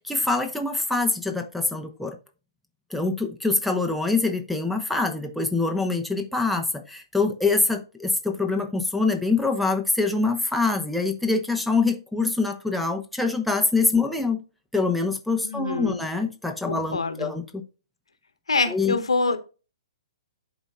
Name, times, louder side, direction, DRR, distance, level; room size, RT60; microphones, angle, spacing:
voice 1, 0.0-2.2 2.9-14.4 14.7-17.6 18.7-19.0, left 3 dB, ahead, 0.8 m, -25 dB
voice 2, 15.4-16.0 16.7-17.3 18.5-19.4, left 3 dB, 85° left, 1.1 m, -25 dB
11.0 x 4.0 x 2.3 m
figure-of-eight pair, 125°, 3 cm